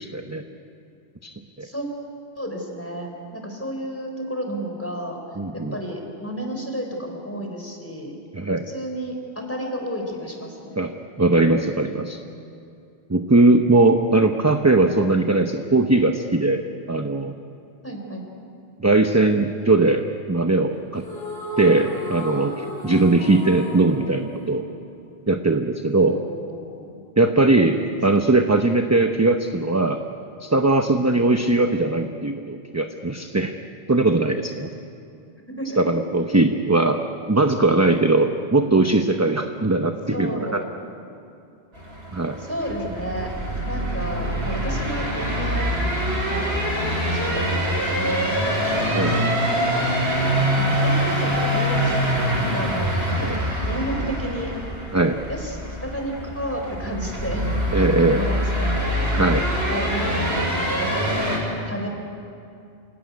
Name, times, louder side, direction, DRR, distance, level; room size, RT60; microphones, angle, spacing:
voice 1, 0.1-0.4 1.2-1.7 5.4-5.8 8.3-8.7 10.8-12.2 13.1-17.3 18.8-21.0 21.6-24.6 25.3-26.2 27.2-30.0 30.4-33.5 33.9-34.7 35.8-37.0 37.3-40.6 42.1-42.4 48.9-49.2 53.2-53.4 54.9-55.2 57.7-58.2 59.1-59.5, right 2 dB, 15° right, 5 dB, 0.8 m, -20 dB
voice 2, 2.3-5.2 5.5-8.2 8.7-10.8 17.8-18.2 26.1-27.0 27.8-28.3 35.5-35.8 40.1-40.7 42.4-43.3 43.7-45.7 46.3-50.2 50.6-52.0 52.3-53.3 53.7-54.5 55.3-57.5 58.1-58.7 59.7-60.3 60.8-61.2 61.7-61.9, equal, 10° left, 2 dB, 4.1 m, -32 dB
sound 1, 21.0-25.4, equal, 75° left, 4.7 m, -34 dB
sound 2, 41.7-61.4, equal, 65° right, 5.8 m, -24 dB
27.0 x 17.5 x 9.6 m, 2.6 s
omnidirectional pair, 1.1 m